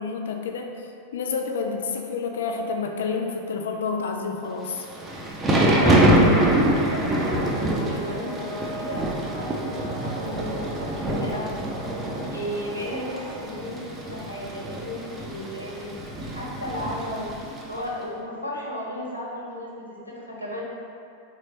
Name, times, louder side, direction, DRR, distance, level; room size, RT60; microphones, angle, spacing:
voice 1, 0.0-4.9 5.8-6.2, left 5 dB, 60° left, 3 dB, 0.4 m, -29 dB
Thunder / Rain, 4.7-17.8, right 1 dB, 20° right, 0.6 m, -25 dB
voice 2, 5.8-11.6 12.3-15.9 16.3-17.3 17.7-20.6, equal, 90° right, -5 dB, 0.9 m, -34 dB
sound 1, 6.8-13.4, equal, 15° left, 1.2 m, -39 dB
3.7 x 3.2 x 4.1 m, 2.4 s
figure-of-eight pair, 90°, 0 cm